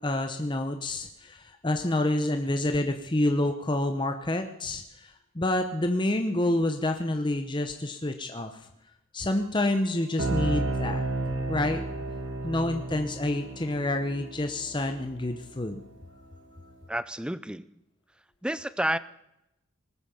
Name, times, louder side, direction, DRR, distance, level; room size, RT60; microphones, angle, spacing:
voice 1, 0.0-8.5 9.1-11.0 11.5-11.8 12.4-15.8, left 1 dB, 20° left, 6 dB, 0.9 m, -28 dB
sound 1, 10.2-15.8, right 2 dB, 60° right, 2.7 m, -32 dB
voice 2, 16.9-17.6 18.4-19.0, right 1 dB, 5° right, 16 dB, 0.5 m, -30 dB
20.0 x 9.3 x 7.0 m, 0.86 s
head